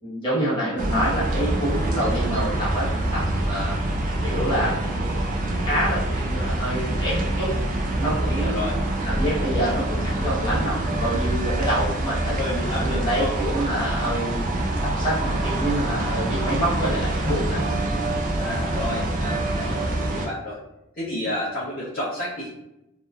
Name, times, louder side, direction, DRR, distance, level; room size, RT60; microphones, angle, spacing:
voice 1, 0.0-3.8 4.2-5.2 5.6-7.5 8.0-12.3 12.8-14.4 14.8-17.6, right 1 dB, 20° left, -9 dB, 1.2 m, -27 dB
sound 1, 0.8-20.3, right 1 dB, 35° right, 0.3 m, -25 dB
voice 2, 8.3-8.8 12.4-13.3 18.3-20.6 21.0-22.5, left 1 dB, 40° left, -12 dB, 0.7 m, -30 dB
2.9 x 2.1 x 2.4 m, 0.88 s
head